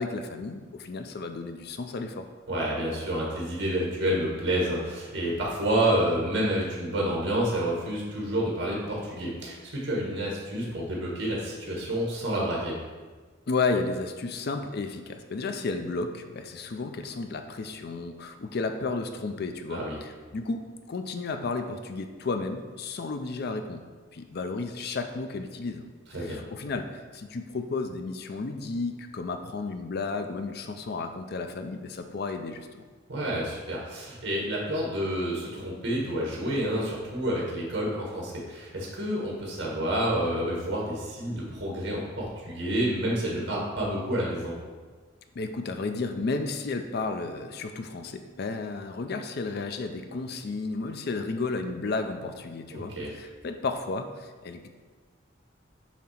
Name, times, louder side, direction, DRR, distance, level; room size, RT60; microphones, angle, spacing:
voice 1, 0.0-2.3 13.5-23.8 24.1-25.9 26.2-32.8 45.4-54.7, left 3 dB, 55° left, 7 dB, 0.4 m, -33 dB
voice 2, 2.5-12.8 19.7-20.0 26.1-26.4 33.1-44.5 52.7-53.1, right 1 dB, 70° right, -3 dB, 1.5 m, -29 dB
7.2 x 2.9 x 5.7 m, 1.4 s
head